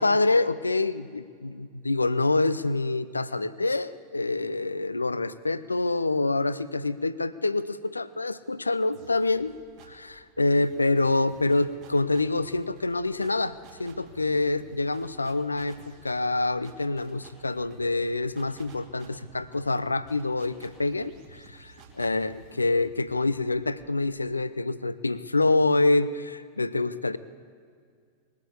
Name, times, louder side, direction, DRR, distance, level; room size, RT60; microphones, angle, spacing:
voice 1, 0.0-9.5 9.9-15.8 16.0-27.2, left 2 dB, 80° left, 16 dB, 0.5 m, -26 dB
sound 1, 8.9-10.1 10.6-24.3, right 4 dB, 45° right, 2.6 m, -53 dB
20.0 x 8.3 x 8.0 m, 2.1 s
figure-of-eight pair, 90°, 0 cm